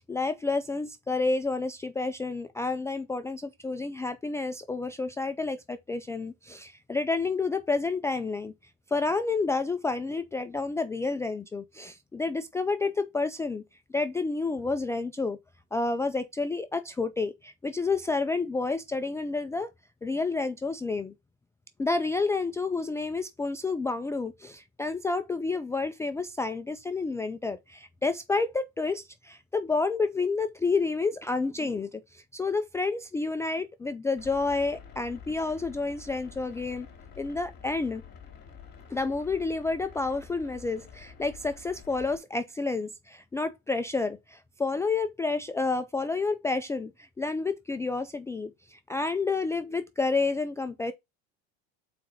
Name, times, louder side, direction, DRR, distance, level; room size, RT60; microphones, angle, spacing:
voice 1, 0.0-8.5 8.9-13.6 13.9-15.4 15.7-19.7 20.0-21.1 21.8-36.9 37.2-38.0 38.9-50.9, left 3 dB, 10° left, 0.3 m, -30 dB
sound 1, 34.2-42.2, left 7 dB, 30° left, 2.1 m, -49 dB
4.6 x 4.3 x 5.3 m
supercardioid pair, 125°, 31 cm